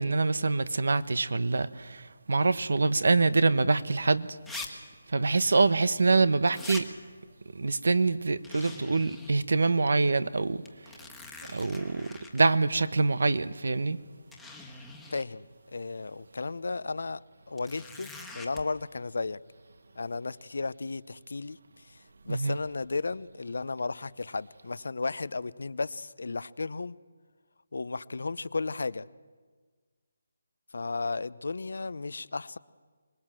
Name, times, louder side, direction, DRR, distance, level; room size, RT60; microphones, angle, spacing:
voice 1, 0.0-2.0 2.3-4.3 5.1-6.9 7.5-10.6 11.5-14.0 22.3-22.6, right 3 dB, 70° right, 1.1 m, -25 dB
sound 1, 4.5-4.7 4.9-5.0 6.5-6.8 8.4-9.3 9.8-9.9 10.6-12.4 13.5-13.6 14.3-15.3 17.6-18.6, left 3 dB, ahead, 1.6 m, -43 dB
voice 2, 15.1-15.5 15.7-17.2 17.5-19.4 20.0-21.6 21.9-22.0 22.3-27.0 27.7-29.1 30.7-32.6, left 3 dB, 75° left, 0.8 m, -34 dB
24.5 x 20.5 x 7.6 m
figure-of-eight pair, 165°, 0 cm